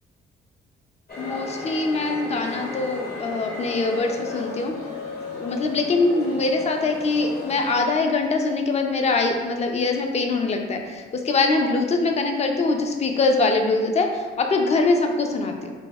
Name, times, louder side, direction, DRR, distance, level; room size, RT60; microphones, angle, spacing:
sound 1, 1.1-7.8, left 3 dB, 50° left, 0.9 m, -34 dB
voice 1, 1.2-4.7 5.3-15.7, left 3 dB, 35° left, 4 dB, 0.4 m, -23 dB
3.3 x 2.1 x 3.4 m, 1.5 s
cardioid pair, 90°, 20 cm